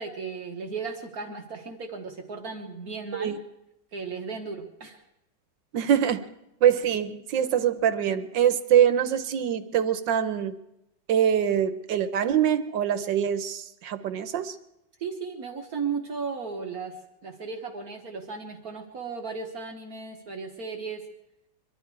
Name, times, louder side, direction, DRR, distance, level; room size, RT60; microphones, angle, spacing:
voice 1, 0.0-3.4 3.9-5.0 15.0-21.0, right 5 dB, 55° right, 4 dB, 1.7 m, -35 dB
voice 2, 5.7-6.3 6.6-10.6 11.1-14.5, right 9 dB, 90° right, 11 dB, 1.6 m, -24 dB
24.5 x 12.0 x 4.7 m, 0.85 s
omnidirectional pair, 1.9 m